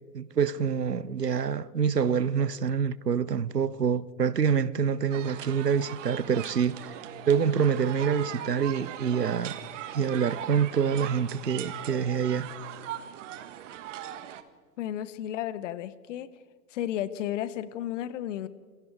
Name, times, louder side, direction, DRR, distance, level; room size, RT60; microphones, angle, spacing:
voice 1, 0.1-6.9 7.3-9.6 9.9-12.5, right 7 dB, 85° right, 0.8 m, -26 dB
sound 1, 5.1-14.4, right 11 dB, 50° right, 1.6 m, -40 dB
voice 2, 14.8-16.3 16.7-18.5, left 11 dB, 50° left, 1.3 m, -33 dB
27.5 x 22.5 x 4.8 m
figure-of-eight pair, 95°, 47 cm